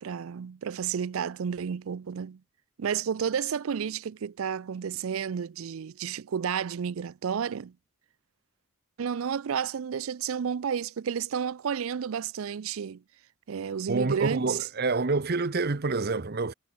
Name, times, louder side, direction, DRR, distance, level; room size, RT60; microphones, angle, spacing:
voice 1, 0.0-2.4 2.8-7.7 9.0-13.0 13.5-14.7, right 7 dB, 75° right, 0.4 m, -31 dB
voice 2, 13.9-16.5, right 3 dB, 50° right, 0.9 m, -27 dB
head